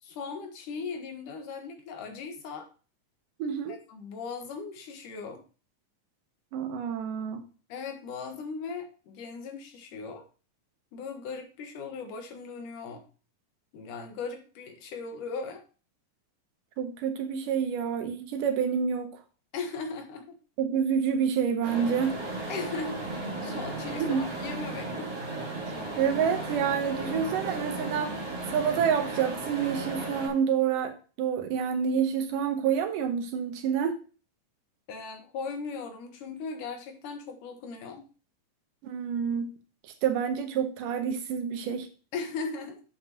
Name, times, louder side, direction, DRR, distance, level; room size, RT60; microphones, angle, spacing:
voice 1, 0.0-2.7 3.9-5.4 7.7-10.2 10.9-13.0 13.7-15.6 19.5-20.4 22.5-23.1 23.4-25.1 34.9-38.1 42.1-42.8, left 4 dB, 80° left, 4 dB, 2.9 m, -38 dB
voice 2, 3.4-3.8 6.5-7.4 16.8-19.1 20.6-22.2 23.9-24.2 25.7-28.2 28.5-34.0 38.8-39.5 40.0-41.9, right 7 dB, 85° right, 7 dB, 2.7 m, -28 dB
sound 1, 21.6-30.3, right 2 dB, 40° right, 3.9 m, -35 dB
8.7 x 7.6 x 2.9 m, 0.35 s
omnidirectional pair, 3.7 m